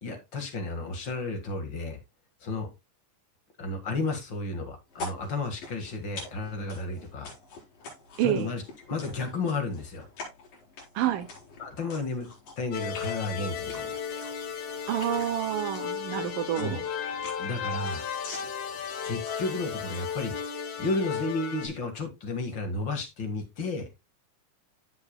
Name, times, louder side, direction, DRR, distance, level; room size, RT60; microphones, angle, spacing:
voice 1, 0.0-2.0 2.4-2.7 3.6-7.3 8.2-8.6 8.9-10.1 11.6-12.3 12.6-14.0 16.6-16.8 17.4-18.1 19.0-20.4 20.8-23.9, left 3 dB, 40° left, 2.0 m, -32 dB
sound 1, 4.9-20.3, left 2 dB, 90° left, 6.3 m, -46 dB
voice 2, 11.0-11.3 14.9-16.8, right 12 dB, 85° right, 2.5 m, -28 dB
sound 2, 12.7-21.7, left 7 dB, 70° left, 2.7 m, -35 dB
15.5 x 6.1 x 2.2 m
omnidirectional pair, 3.8 m